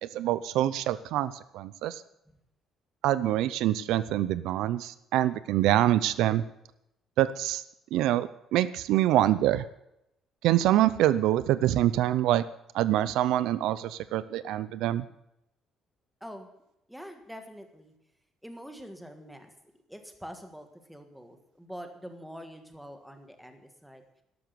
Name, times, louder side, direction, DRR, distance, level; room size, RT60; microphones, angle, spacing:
voice 1, 0.1-2.0 3.0-6.4 7.2-7.6 7.9-9.7 10.4-12.4 12.7-15.0, right 13 dB, 75° right, 16 dB, 0.6 m, -25 dB
voice 2, 16.9-17.9 18.4-19.5 19.9-24.0, equal, ahead, 6 dB, 1.5 m, -45 dB
12.5 x 12.5 x 6.9 m, 0.83 s
cardioid pair, 175°, 0 cm